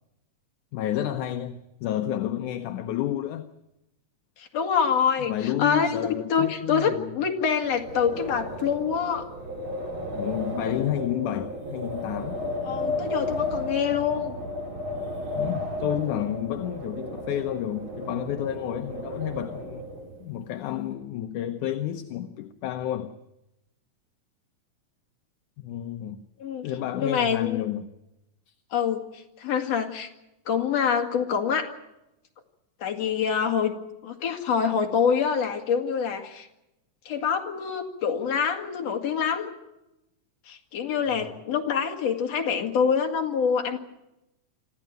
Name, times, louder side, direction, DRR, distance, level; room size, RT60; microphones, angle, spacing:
voice 1, 0.7-3.5 5.2-7.1 10.1-12.4 15.4-19.9 20.2-23.2 25.6-26.2 26.6-27.9 41.1-41.3, left 11 dB, 75° left, 2.4 m, -30 dB
voice 2, 4.4-9.3 12.6-14.3 26.4-26.7 26.9-27.6 28.7-30.1 30.5-31.7 32.8-33.7 34.0-36.5 37.0-39.5 40.5-43.8, left 7 dB, 55° left, 3.2 m, -26 dB
Wind, 7.6-20.2, left 2 dB, 40° right, 3.7 m, -33 dB
26.0 x 14.5 x 9.1 m
omnidirectional pair, 3.7 m